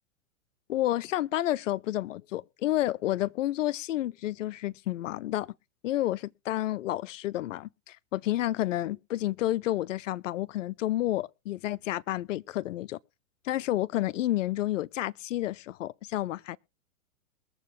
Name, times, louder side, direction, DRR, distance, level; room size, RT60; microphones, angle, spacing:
voice 1, 0.7-5.5 5.8-13.0 13.4-16.6, left 14 dB, 60° left, 0.6 m, -30 dB
22.0 x 7.6 x 3.1 m
hypercardioid pair, 135°, 43 cm